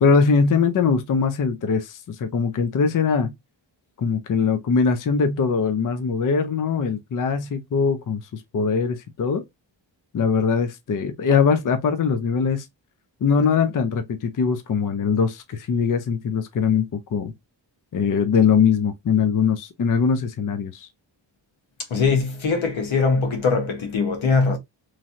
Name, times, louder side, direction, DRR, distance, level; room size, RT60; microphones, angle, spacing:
voice 1, 0.0-3.3 4.0-9.4 10.1-12.7 13.2-17.3 17.9-20.9, left 5 dB, 45° left, 0.5 m, -21 dB
voice 2, 21.9-24.6, left 4 dB, 80° left, 1.1 m, -21 dB
3.1 x 2.6 x 2.4 m
wide cardioid pair, 100°, 46 cm